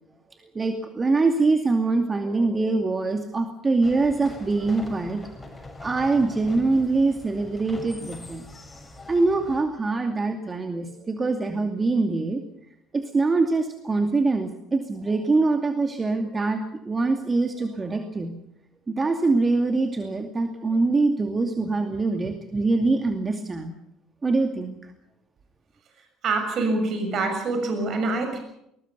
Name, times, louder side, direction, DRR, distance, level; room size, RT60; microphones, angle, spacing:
voice 1, 0.4-8.4 9.1-12.4 12.9-18.3 18.9-23.8 24.2-24.9, right 3 dB, 25° right, 5 dB, 2.5 m, -24 dB
sound 1, 3.8-9.6, left 2 dB, 20° left, 6.7 m, -43 dB
voice 2, 26.2-28.4, right 3 dB, 50° right, 5 dB, 6.8 m, -25 dB
21.5 x 20.5 x 6.9 m, 0.80 s
hypercardioid pair, 60°, 0 cm